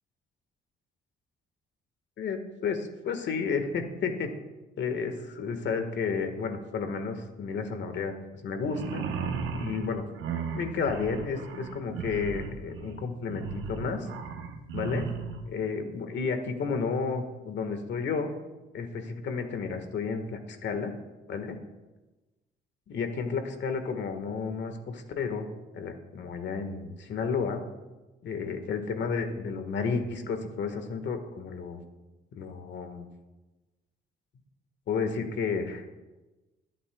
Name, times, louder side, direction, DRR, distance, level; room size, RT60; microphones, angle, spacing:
voice 1, 2.2-4.3 4.8-8.1 8.4-9.0 9.5-10.0 10.5-14.1 14.7-15.1 15.5-18.3 18.7-20.9 21.3-21.6 22.9-25.5 25.7-27.6 28.2-31.8 32.3-33.1 34.9-35.8, left 5 dB, 65° left, 6 dB, 1.6 m, -32 dB
sound 1, 8.6-15.5, right 5 dB, 90° right, 1.0 m, -36 dB
22.5 x 8.4 x 2.3 m, 1.1 s
cardioid pair, 90°, 20 cm